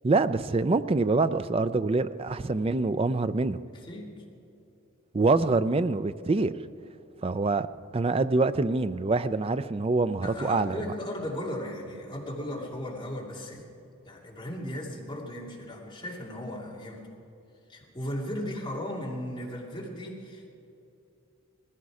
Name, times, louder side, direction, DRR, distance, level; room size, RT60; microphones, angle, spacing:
voice 1, 0.0-3.6 5.1-6.5 7.2-7.7 7.9-10.8, right 3 dB, 25° right, 13 dB, 0.4 m, -25 dB
voice 2, 3.7-4.2 10.2-13.6 14.0-17.1 17.7-20.5, left 1 dB, 20° left, -3 dB, 2.5 m, -36 dB
19.5 x 15.0 x 4.9 m, 2.8 s
head